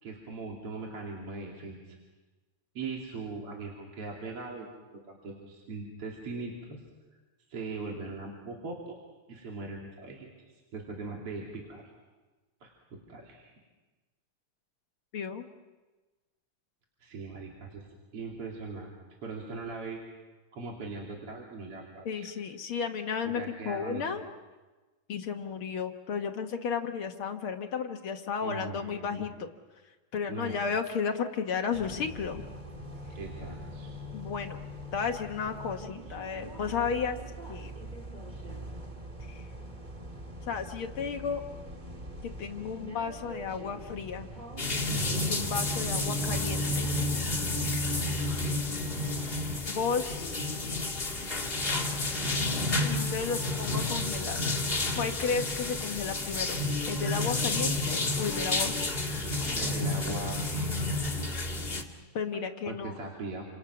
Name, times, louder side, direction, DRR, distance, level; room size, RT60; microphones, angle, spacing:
voice 1, 0.0-2.0 2.8-4.7 5.1-6.8 7.5-9.0 9.3-10.3 10.7-11.9 12.6-13.5 17.0-17.9 18.1-18.9 19.2-20.0 20.5-22.3 23.3-24.0 28.4-29.3 30.3-30.6 33.1-34.0 44.9-45.5 47.6-48.2 59.5-60.7 62.7-63.4, right 3 dB, 45° right, -2 dB, 3.5 m, -40 dB
voice 2, 15.1-15.4 22.0-24.3 25.1-29.5 30.1-32.4 34.1-34.6 34.9-37.2 37.5-37.7 39.3-39.5 40.5-41.4 42.4-44.3 45.2-46.9 49.7-50.3 52.8-54.5 55.0-56.6 56.8-58.9 62.1-63.0, left 6 dB, 60° left, 5 dB, 1.5 m, -33 dB
sound 1, 31.7-47.7, right 1 dB, 20° right, 1.3 m, -43 dB
sound 2, 44.6-61.8, left 2 dB, 20° left, 1.7 m, -30 dB
29.5 x 27.0 x 6.0 m, 1.2 s
omnidirectional pair, 3.9 m